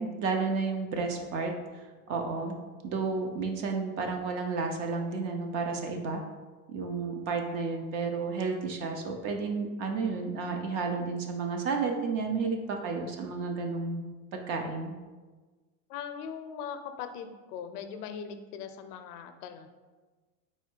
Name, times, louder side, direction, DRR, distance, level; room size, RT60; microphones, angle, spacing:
voice 1, 0.0-2.5 2.8-6.2 6.7-14.0 14.3-14.9, right 4 dB, 35° right, 4 dB, 0.4 m, -32 dB
voice 2, 15.9-19.7, left 7 dB, 75° left, 8 dB, 0.6 m, -40 dB
4.3 x 2.3 x 4.4 m, 1.3 s
supercardioid pair, 135°, 45 cm